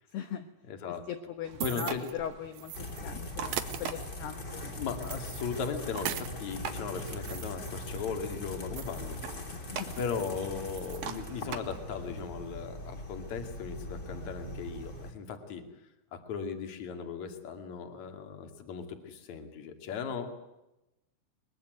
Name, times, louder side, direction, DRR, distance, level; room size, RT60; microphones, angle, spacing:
voice 1, 0.1-0.5 0.9-4.7 9.5-10.0, left 9 dB, 70° left, 7 dB, 2.9 m, -40 dB
voice 2, 0.7-1.0 1.6-2.0 4.6-9.5 10.0-15.6 16.1-20.4, left 6 dB, 45° left, 6 dB, 3.2 m, -37 dB
sound 1, 1.3-3.0 3.4-6.4 6.8-9.2 9.5-9.6 9.9-10.4 10.7-11.1, right 11 dB, 75° right, 2.0 m, -41 dB
sound 2, 1.4-12.3, right 8 dB, 60° right, 2.9 m, -45 dB
sound 3, 2.7-15.1, left 1 dB, 25° left, 3.1 m, -41 dB
23.0 x 22.0 x 9.4 m, 0.96 s
omnidirectional pair, 5.7 m